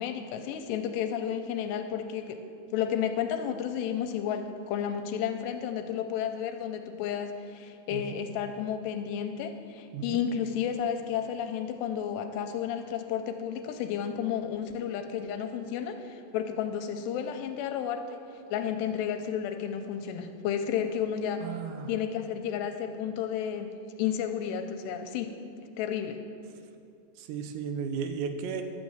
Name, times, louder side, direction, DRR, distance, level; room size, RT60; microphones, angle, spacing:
voice 1, 0.0-2.4 2.7-18.2 18.5-21.4 21.9-23.7 24.0-25.3 25.8-26.2, left 8 dB, 85° left, 6 dB, 2.7 m, -32 dB
voice 2, 7.9-8.2 9.9-10.2 21.4-21.9 27.2-28.6, right 6 dB, 85° right, 7 dB, 3.0 m, -35 dB
11.5 x 7.1 x 7.8 m, 2.6 s
omnidirectional pair, 5.0 m